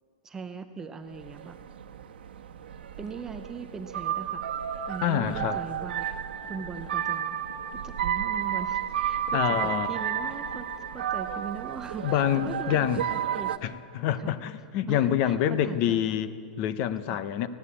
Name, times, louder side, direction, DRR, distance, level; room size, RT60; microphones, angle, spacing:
voice 1, 0.2-1.6 3.0-4.5 4.9-6.1 6.5-7.4 7.7-13.6 14.2-14.3 14.9-16.1 17.1-17.2, right 5 dB, 10° right, 8 dB, 0.5 m, -40 dB
sound 1, 1.1-13.6, right 9 dB, 85° right, 1.2 m, -32 dB
voice 2, 5.0-5.6 9.3-9.9 12.0-13.0 13.6-17.5, left 10 dB, 30° left, 13 dB, 0.7 m, -27 dB
19.5 x 16.0 x 8.5 m, 2.3 s
supercardioid pair, 175°, 5 cm